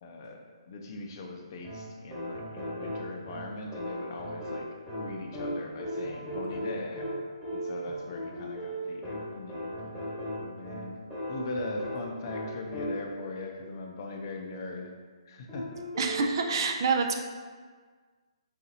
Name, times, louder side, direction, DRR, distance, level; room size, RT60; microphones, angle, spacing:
voice 1, 0.0-4.7 5.0-7.1 7.5-11.0 11.3-14.9 15.2-15.7, left 2 dB, 40° left, 2 dB, 0.5 m, -40 dB
sound 1, 1.6-13.3 15.5-16.3, equal, 5° left, 1.3 m, -37 dB
voice 2, 16.0-17.2, right 4 dB, 45° right, 3 dB, 0.4 m, -27 dB
4.1 x 3.9 x 2.7 m, 1.5 s
hypercardioid pair, 160°, 3 cm